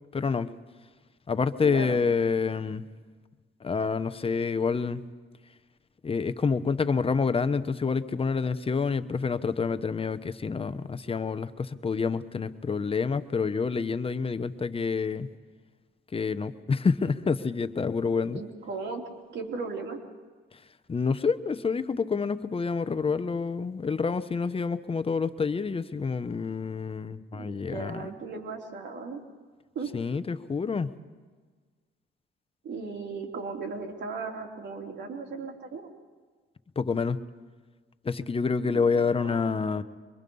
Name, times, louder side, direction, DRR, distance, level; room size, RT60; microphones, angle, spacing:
voice 1, 0.1-0.5 1.3-2.8 3.6-5.0 6.0-15.3 16.1-18.4 20.9-28.1 29.9-30.9 36.8-37.2 38.0-39.8, left 5 dB, 30° left, 11 dB, 1.0 m, -28 dB
voice 2, 1.6-2.0 18.3-19.0 19.3-20.0 27.3-29.2 29.7-29.9 32.6-35.9 38.6-39.5, right 4 dB, 65° right, 2 dB, 3.3 m, -37 dB
25.0 x 22.5 x 5.5 m, 1.5 s
cardioid pair, 90°, 20 cm